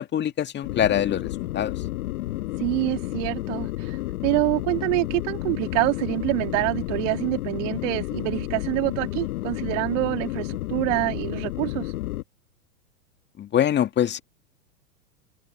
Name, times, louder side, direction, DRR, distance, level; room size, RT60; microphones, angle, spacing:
voice 1, 0.0-1.8 13.4-14.2, left 10 dB, 25° left, 1.9 m, -24 dB
sound 1, 0.6-12.2, left 17 dB, 65° left, 1.3 m, -31 dB
voice 2, 2.6-4.0 4.2-11.9, right 27 dB, 50° right, 2.5 m, -26 dB
open air
hypercardioid pair, 115°, 46 cm